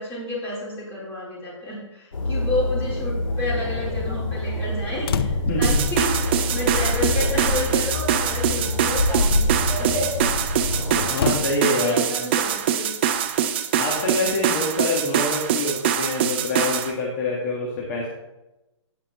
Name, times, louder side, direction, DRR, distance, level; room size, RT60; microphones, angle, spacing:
voice 1, 0.0-10.1 11.8-12.9, left 1 dB, 15° left, -7 dB, 4.0 m, -30 dB
sound 1, 2.1-11.1, left 2 dB, 85° left, 3.6 m, -25 dB
sound 2, 5.1-5.7 7.0-7.1 8.0-8.2 8.7-9.3 11.1-11.5, left 7 dB, 50° left, 0.5 m, -29 dB
voice 2, 5.4-5.8 11.1-11.9 13.8-18.1, left 2 dB, 30° left, -3 dB, 1.7 m, -26 dB
sound 3, 5.6-16.9, right 9 dB, 20° right, 0.4 m, -24 dB
17.0 x 5.7 x 3.1 m, 0.96 s
hypercardioid pair, 160°, 16 cm